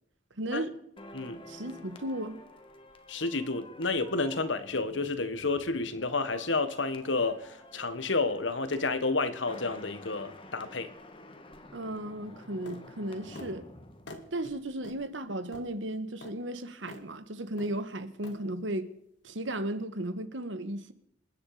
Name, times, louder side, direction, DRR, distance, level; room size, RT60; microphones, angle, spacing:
voice 1, 0.4-0.7 1.5-2.4 11.7-13.7 14.3-18.9 19.2-20.9, right 1 dB, 90° right, 1.6 m, -35 dB
sound 1, 1.0-15.1 15.4-15.6, left 1 dB, 30° left, 1.9 m, -50 dB
voice 2, 3.1-10.9, left 3 dB, 85° left, 1.7 m, -30 dB
sound 2, 12.7-12.8 13.3-13.5 14.1-14.3 14.8-15.0 15.5-15.7 16.2-16.3 16.9-17.0 17.6-17.8 18.2-18.4, left 2 dB, 70° left, 2.5 m, -45 dB
27.5 x 9.9 x 5.1 m
head